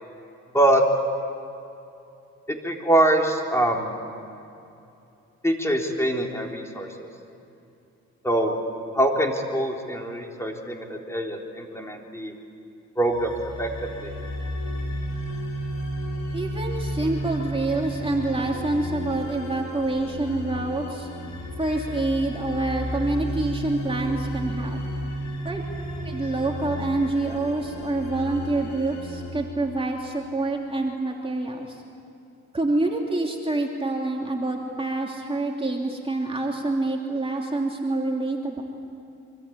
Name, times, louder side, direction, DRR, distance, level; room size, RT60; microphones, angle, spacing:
voice 1, 2.5-3.9 5.4-7.1 8.2-8.5 8.9-12.3 13.0-14.1, right 1 dB, 10° left, 1 dB, 3.7 m, -24 dB
sound 1, 13.1-30.2, equal, 70° left, 5.0 m, -33 dB
voice 2, 16.3-21.1 21.6-24.8 25.4-25.6 26.0-31.8 32.5-38.6, right 2 dB, 20° right, 0 dB, 2.9 m, -27 dB
25.5 x 25.0 x 8.7 m, 2.7 s
cardioid pair, 90°, 30 cm